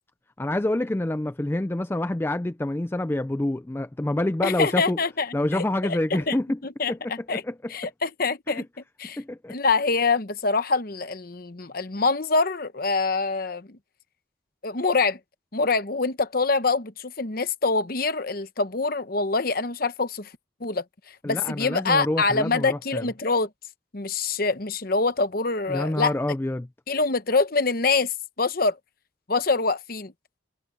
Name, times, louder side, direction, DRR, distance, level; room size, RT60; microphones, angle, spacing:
voice 1, 0.4-5.0 5.3-6.6 6.9-7.7 8.5-8.6 9.2-9.6 21.2-23.1 25.7-26.7, left 1 dB, 10° left, 0.3 m, -27 dB
voice 2, 4.4-6.0 6.3-6.4 6.8-7.4 7.7-8.6 9.0-9.2 9.5-13.8 14.6-15.2 15.5-20.3 20.6-20.8 21.2-23.5 23.9-26.1 26.9-28.8 29.3-30.1, left 4 dB, 45° left, 0.9 m, -25 dB
head